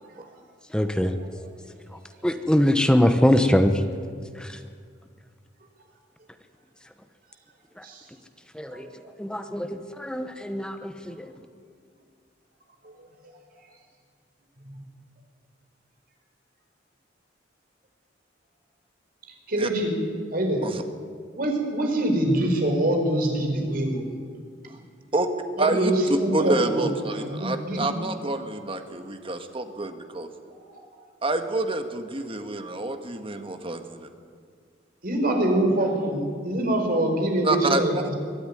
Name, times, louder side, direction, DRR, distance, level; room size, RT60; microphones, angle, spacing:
voice 1, 0.7-1.1 2.2-3.8 4.4-4.6 7.8-7.9 8.5-8.9 9.2-11.3, left 1 dB, 5° left, 8 dB, 0.9 m, -23 dB
voice 2, 8.7-9.1 19.5-20.0 20.3-20.6 21.4-24.1 25.6-26.9 27.1-27.9 30.8-30.9 35.0-38.1, right 1 dB, 50° right, 2 dB, 4.6 m, -24 dB
voice 3, 25.6-30.3 31.2-34.1 37.4-38.1, right 2 dB, 30° right, 7 dB, 1.6 m, -28 dB
22.5 x 13.0 x 9.9 m, 2.1 s
head